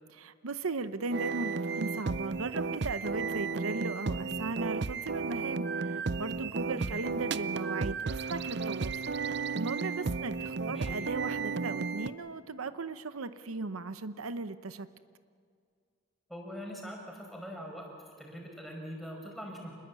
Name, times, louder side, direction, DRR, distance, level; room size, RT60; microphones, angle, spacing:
voice 1, 0.1-14.9, right 3 dB, 90° right, 12 dB, 0.9 m, -37 dB
sound 1, 1.1-12.1, right 4 dB, 55° right, 0.6 m, -33 dB
voice 2, 10.6-10.9 16.3-17.9 18.2-19.7, equal, ahead, 0 dB, 5.2 m, -42 dB
27.5 x 21.0 x 8.2 m, 2.2 s
head